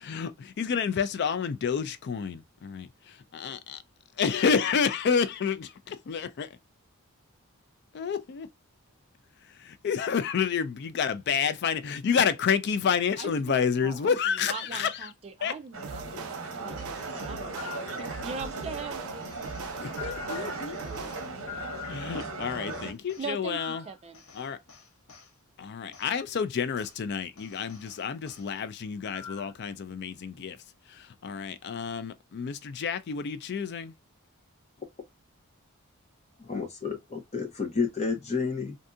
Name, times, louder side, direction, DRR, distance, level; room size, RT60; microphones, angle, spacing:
voice 1, 0.0-3.8 4.2-6.5 7.9-8.5 9.6-15.1 15.4-15.6 19.8-20.8 21.8-23.8 24.3-24.6 25.6-30.6 30.9-33.9, left 6 dB, 50° left, 0.3 m, -29 dB
voice 2, 13.2-19.0 19.5-19.6 19.9-21.1 23.2-24.2, right 5 dB, 30° right, 0.3 m, -41 dB
sound 1, 15.7-22.9, right 3 dB, 65° right, 0.8 m, -38 dB
sound 2, 15.8-21.5, right 5 dB, 90° right, 0.5 m, -42 dB
sound 3, 16.8-18.5 19.2-22.4 22.7-25.3 25.9-26.1 26.8-27.0 27.4-28.5 29.0-29.6, left 9 dB, 70° left, 0.7 m, -46 dB
voice 3, 36.4-38.8, left 5 dB, 30° left, 0.9 m, -30 dB
2.6 x 2.6 x 2.2 m
head